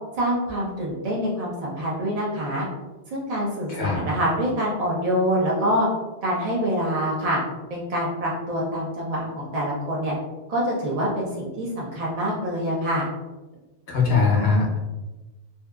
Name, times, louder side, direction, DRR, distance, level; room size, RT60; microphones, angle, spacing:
voice 1, 0.2-2.7 3.1-5.9 6.2-7.4 7.7-10.1 10.5-13.1, equal, 55° right, -5 dB, 0.4 m, -25 dB
voice 2, 3.7-4.0 13.9-14.8, left 4 dB, 60° left, -2 dB, 0.8 m, -21 dB
2.6 x 2.2 x 2.3 m, 1.1 s
omnidirectional pair, 1.2 m